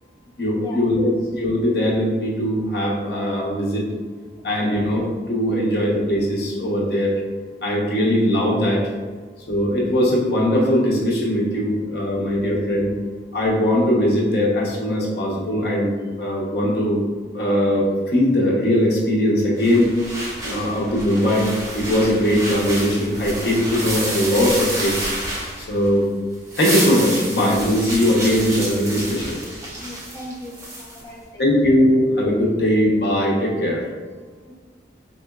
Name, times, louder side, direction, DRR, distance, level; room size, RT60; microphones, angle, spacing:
voice 1, 0.4-3.9 4.4-7.2 7.6-8.9 9.5-12.9 13.3-17.0 17.3-19.9 20.4-25.1 25.6-26.1 26.5-29.4 31.4-33.8, equal, 65° left, -3 dB, 0.8 m, -20 dB
sound 1, 19.6-26.0 26.3-31.0, right 1 dB, 15° right, 0.7 m, -29 dB
voice 2, 29.8-31.5 34.5-34.6, left 1 dB, 20° left, -6 dB, 0.7 m, -38 dB
4.2 x 3.7 x 2.3 m, 1.4 s
head